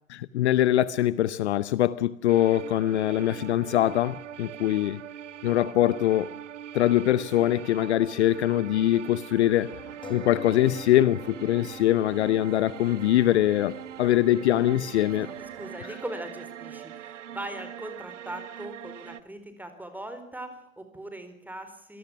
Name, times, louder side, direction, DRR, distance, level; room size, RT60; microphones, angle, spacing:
voice 1, 0.1-5.0 5.4-6.3 6.7-9.8 10.1-15.3, left 13 dB, 55° left, 0.8 m, -23 dB
sound 1, 2.3-19.2, right 10 dB, 65° right, 0.8 m, -42 dB
sound 2, 2.6-6.4 6.7-6.8 10.0-15.2, left 2 dB, 10° left, 1.7 m, -48 dB
sound 3, 9.3-15.8, equal, 90° left, 4.7 m, -53 dB
voice 2, 15.2-22.0, right 1 dB, 5° right, 4.2 m, -40 dB
26.5 x 18.5 x 6.1 m
figure-of-eight pair, 90°, 40 cm